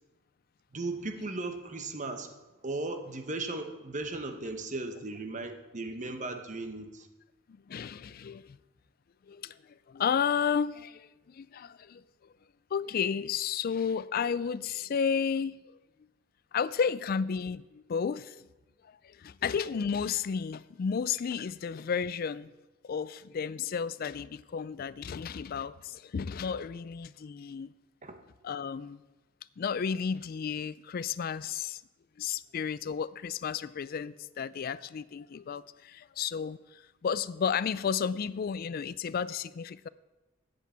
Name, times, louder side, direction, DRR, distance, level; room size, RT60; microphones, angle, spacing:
voice 1, 0.7-2.3 2.6-7.1 28.0-28.2, right 2 dB, 35° right, 7 dB, 1.0 m, -36 dB
voice 2, 7.7-8.6 9.3-9.6 9.9-12.0 12.7-15.6 16.5-18.4 19.0-22.5 22.8-27.7 28.4-29.0 29.6-31.8 32.2-39.9, left 6 dB, 45° left, 18 dB, 0.3 m, -32 dB
8.1 x 7.3 x 8.2 m, 1.1 s
head